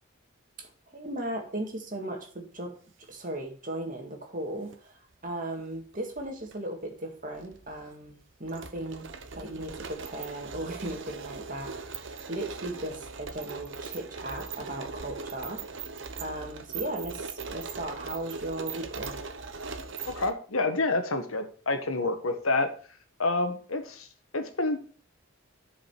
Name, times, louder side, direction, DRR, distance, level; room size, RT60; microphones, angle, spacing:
voice 1, 0.6-2.8 3.1-9.1 9.3-15.6 16.2-19.2, right 1 dB, 40° right, 2 dB, 2.0 m, -37 dB
sound 1, 4.5-4.8 5.8-6.6 6.8-6.9 7.4-20.3, right 5 dB, 65° right, 0.9 m, -40 dB
voice 2, 20.1-22.7 23.2-24.1 24.3-24.8, left 2 dB, 85° left, 7 dB, 1.4 m, -28 dB
8.5 x 5.1 x 5.9 m, 0.42 s
head